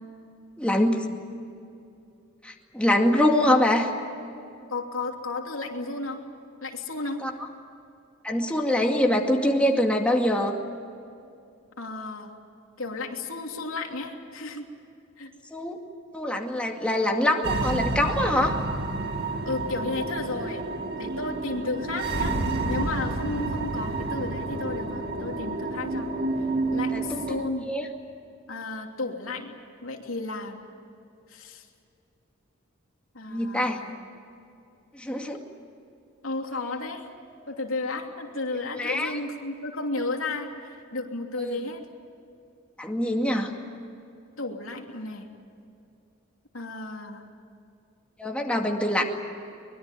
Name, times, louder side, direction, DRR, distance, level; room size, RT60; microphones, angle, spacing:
voice 1, 0.6-1.0 2.4-3.9 7.2-7.3 8.2-10.5 15.5-15.8 16.1-18.6 26.9-27.2 27.7-27.9 33.3-33.8 34.9-35.4 38.8-39.2 41.4-41.6 42.8-43.5 48.2-49.0, left 1 dB, 5° left, 1 dB, 2.3 m, -24 dB
voice 2, 4.7-6.2 6.6-7.2 11.8-12.3 12.8-14.6 15.2-15.3 19.4-20.6 21.0-22.4 22.7-26.1 26.7-27.7 28.5-29.6 29.8-30.6 31.3-31.7 33.1-33.9 36.2-37.0 37.5-41.8 44.4-45.3 46.5-47.2, left 2 dB, 85° left, 2 dB, 3.0 m, -33 dB
sound 1, 17.4-27.5, right 2 dB, 55° right, 2.3 m, -29 dB
24.0 x 22.0 x 9.1 m, 2.6 s
head